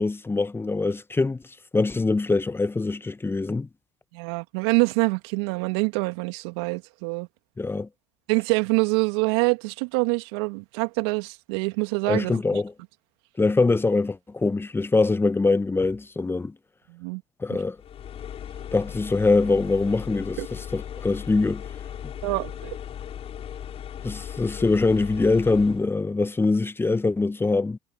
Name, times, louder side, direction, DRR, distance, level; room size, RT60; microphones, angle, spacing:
voice 1, 0.0-1.4 1.7-3.7 7.6-7.9 12.1-12.7 13.4-16.5 17.4-17.8 18.7-21.6 24.0-27.8, left 3 dB, 15° left, 1.2 m, -23 dB
voice 2, 4.1-7.3 8.3-12.4 16.9-17.2 20.4-20.5 22.2-22.7, right 31 dB, 70° right, 2.6 m, -25 dB
sound 1, 17.8-25.9, left 9 dB, 45° left, 6.1 m, -37 dB
hypercardioid pair, 65°, 14 cm